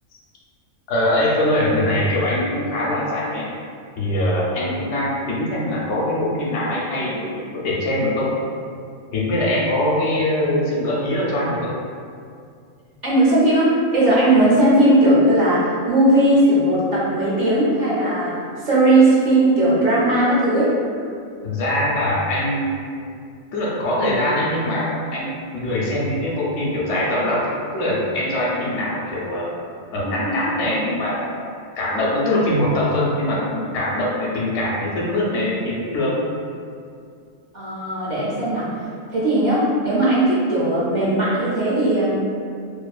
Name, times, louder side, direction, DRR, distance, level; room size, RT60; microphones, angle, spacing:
voice 1, 0.9-3.5 4.0-8.3 9.1-11.7 21.4-23.1 23.5-29.5 29.9-31.4 31.8-36.2, left 1 dB, 70° left, -4 dB, 0.9 m, -22 dB
voice 2, 13.0-18.3 18.6-20.7 37.5-38.7 39.1-42.2, right 1 dB, 55° right, -8 dB, 0.5 m, -17 dB
2.5 x 2.3 x 2.2 m, 2.3 s
omnidirectional pair, 1.3 m